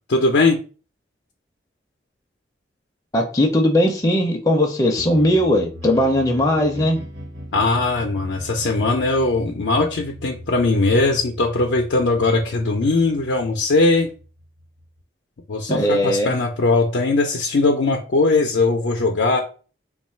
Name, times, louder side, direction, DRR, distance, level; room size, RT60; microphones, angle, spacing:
voice 1, 0.1-0.6 7.5-14.1 15.5-19.4, left 3 dB, 85° left, 1 dB, 0.5 m, -19 dB
voice 2, 3.1-7.0 15.7-16.3, left 1 dB, 20° left, 1 dB, 0.4 m, -19 dB
sound 1, 4.9-15.0, equal, 75° right, 1.1 m, -39 dB
3.1 x 2.3 x 4.3 m, 0.37 s
head